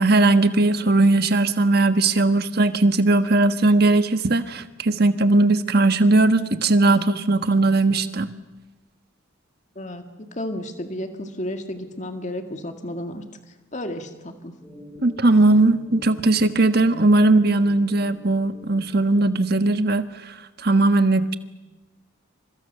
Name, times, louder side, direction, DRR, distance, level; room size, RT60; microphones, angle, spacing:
voice 1, 0.0-8.3 15.0-21.3, right 2 dB, 50° right, 10 dB, 1.4 m, -19 dB
voice 2, 9.8-13.2 13.7-14.6, left 1 dB, 35° left, 6 dB, 2.1 m, -32 dB
sound 1, 14.6-19.7, left 1 dB, 5° left, 6.8 m, -45 dB
29.5 x 26.5 x 6.8 m, 1.1 s
head